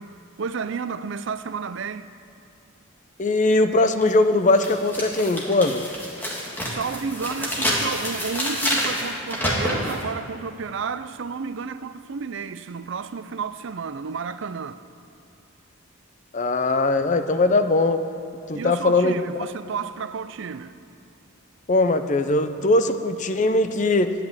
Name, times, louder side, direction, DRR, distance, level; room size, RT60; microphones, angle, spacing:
voice 1, 0.0-2.1 6.6-14.8 18.5-20.8, right 5 dB, 60° right, 0.4 m, -31 dB
voice 2, 3.2-5.9 16.3-18.0 18.5-19.1 21.7-24.1, left 2 dB, 35° left, 0.6 m, -20 dB
sound 1, 4.0-4.1 4.6-10.0, equal, 10° left, 1.8 m, -27 dB
11.0 x 8.4 x 8.8 m
head